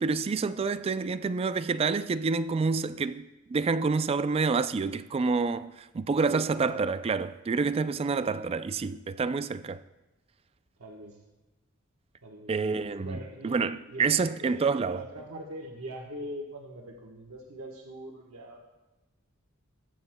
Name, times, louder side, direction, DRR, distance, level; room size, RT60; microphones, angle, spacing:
voice 1, 0.0-9.8 12.5-13.2 13.4-15.0, right 4 dB, 30° right, 0.3 m, -28 dB
voice 2, 6.3-6.9 10.8-11.2 12.2-12.6 13.0-18.6, right 1 dB, 85° right, 1.2 m, -42 dB
18.5 x 9.0 x 2.2 m
head